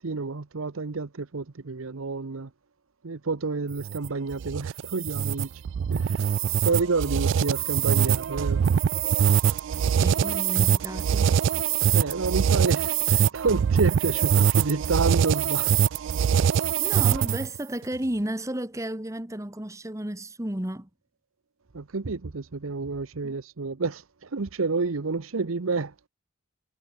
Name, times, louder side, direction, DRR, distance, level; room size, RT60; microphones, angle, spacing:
voice 1, 0.0-2.5 3.0-5.5 5.9-6.2 6.6-8.6 11.9-15.7 21.7-24.0 24.3-25.9, right 4 dB, 90° right, 0.9 m, -29 dB
sound 1, 3.7-17.6, right 8 dB, 60° right, 0.3 m, -23 dB
voice 2, 10.0-11.3 16.8-20.9 23.2-23.3, right 1 dB, 15° right, 1.5 m, -33 dB
head